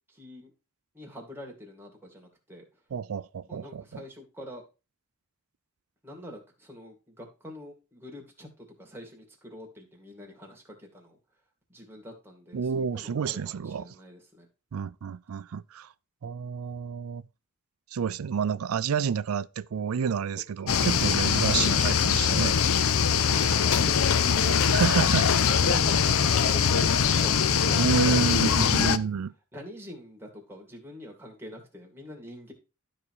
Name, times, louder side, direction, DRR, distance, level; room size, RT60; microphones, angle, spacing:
voice 1, 0.1-0.5 0.9-2.6 3.5-4.6 6.0-11.2 11.7-13.4 13.6-14.5 21.4-21.7 25.1-29.0 29.5-32.5, equal, 10° right, 2.2 m, -44 dB
voice 2, 2.9-4.0 12.5-13.9 14.7-15.9 16.2-17.2 17.9-22.5 24.7-25.3 27.7-29.3, right 6 dB, 80° right, 0.4 m, -29 dB
sound 1, 20.7-29.0, left 7 dB, 75° left, 0.6 m, -22 dB
12.5 x 4.2 x 4.7 m
head